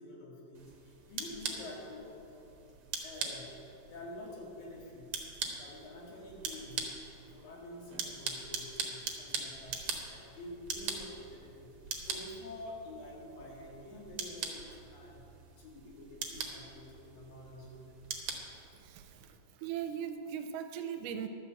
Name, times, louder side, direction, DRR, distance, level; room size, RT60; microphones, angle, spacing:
voice 1, 0.0-2.2 3.0-3.5 3.9-5.2 5.6-6.9 7.3-15.3 15.6-17.9, left 1 dB, 85° left, -4 dB, 3.8 m, -48 dB
sound 1, 0.5-19.3, right 5 dB, 65° right, 1.4 m, -42 dB
voice 2, 18.8-21.3, right 8 dB, 80° right, 7 dB, 2.1 m, -39 dB
12.0 x 5.9 x 7.6 m, 2.9 s
omnidirectional pair, 3.9 m